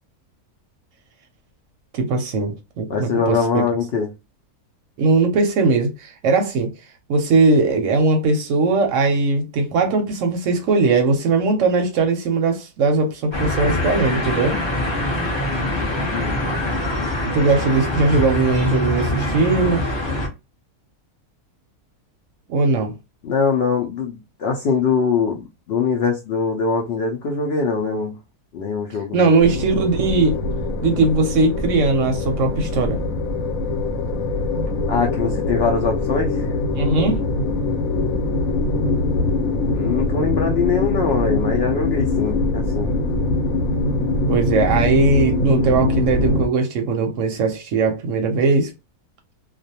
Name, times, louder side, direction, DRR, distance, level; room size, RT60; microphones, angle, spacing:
voice 1, 1.9-3.4 5.0-6.7 7.1-14.6 17.3-19.8 22.5-22.9 29.1-30.4 30.8-33.0 36.8-37.2 44.3-48.7, right 3 dB, 65° right, 0.8 m, -19 dB
voice 2, 2.9-4.1 16.1-16.4 23.2-28.1 28.5-29.3 34.9-36.5 39.7-42.9, left 5 dB, 90° left, 0.5 m, -22 dB
sound 1, 13.3-20.3, left 1 dB, 30° left, 0.5 m, -24 dB
sound 2, 29.4-46.5, left 2 dB, 70° left, 1.0 m, -23 dB
2.4 x 2.2 x 2.7 m
omnidirectional pair, 1.6 m